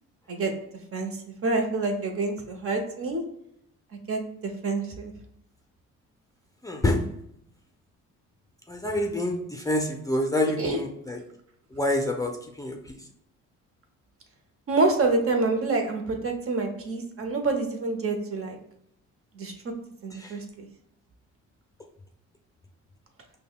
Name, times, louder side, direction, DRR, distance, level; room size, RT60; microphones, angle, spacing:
voice 1, 1.4-3.2 4.1-5.1 10.4-10.8 14.7-18.5 19.4-19.5 20.0-20.6, right 3 dB, 50° right, 3 dB, 0.8 m, -27 dB
voice 2, 6.6-7.0 8.7-11.2 11.7-12.3 12.6-12.8 20.2-20.3, left 1 dB, 10° left, 1 dB, 0.5 m, -27 dB
5.3 x 2.2 x 2.2 m, 0.75 s
cardioid pair, 90°, 30 cm